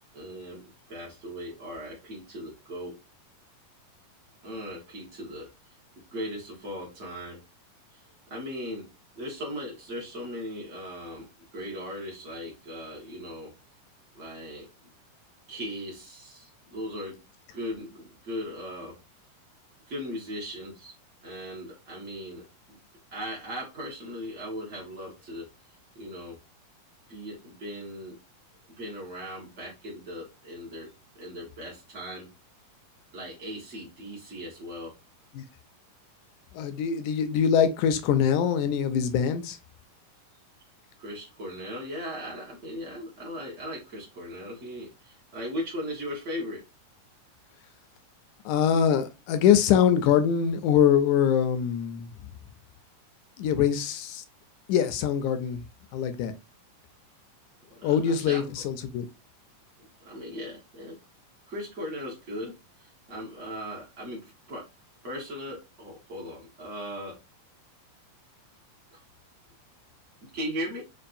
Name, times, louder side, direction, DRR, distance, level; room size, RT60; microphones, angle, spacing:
voice 1, 0.1-2.9 4.4-5.5 6.1-7.4 7.9-8.0 8.3-8.9 9.1-11.3 11.5-13.5 14.1-14.7 15.5-17.2 17.5-18.9 19.9-20.9 21.2-22.5 23.1-25.5 25.9-26.4 27.1-28.2 28.8-30.9 31.1-32.3 33.1-34.9 41.0-46.6 57.8-58.5 59.8-61.0 61.5-64.7 65.0-67.2 68.9-69.0 70.3-70.9, equal, 65° right, 0.7 m, -38 dB
voice 2, 36.5-39.6 48.5-52.1 53.4-54.2 54.7-55.6 55.9-56.3 57.8-59.1, left 8 dB, 80° left, 1.8 m, -23 dB
5.3 x 2.4 x 2.5 m
omnidirectional pair, 3.8 m